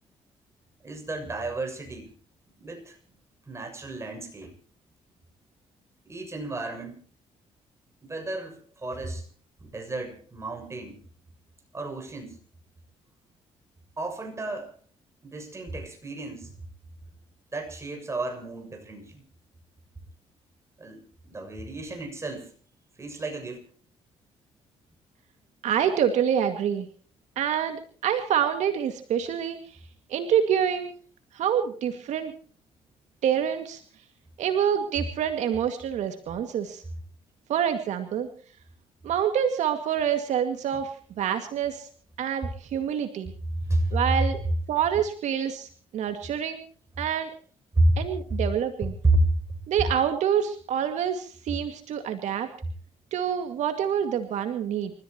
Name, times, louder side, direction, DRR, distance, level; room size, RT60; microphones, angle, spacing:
voice 1, 0.8-2.1 2.6-3.0 3.5-4.5 6.0-7.0 8.0-9.3 9.6-11.0 11.7-12.4 14.0-14.7 15.2-16.5 17.5-19.2 20.8-22.5 23.0-23.7 40.7-40.8 43.6-44.1 47.8-48.0 49.0-49.4, right 1 dB, 25° right, 5 dB, 7.0 m, -30 dB
voice 2, 25.6-26.9 27.4-29.6 30.1-31.0 31.3-32.3 33.2-33.8 34.4-36.8 37.5-38.3 39.0-40.9 41.2-41.9 42.2-43.3 43.9-44.4 44.7-45.7 45.9-46.6 47.0-47.3 48.0-48.9 49.7-52.5 53.1-54.9, right 9 dB, 75° right, 7 dB, 2.1 m, -26 dB
29.0 x 14.5 x 3.0 m, 0.43 s
cardioid pair, 90°, 12 cm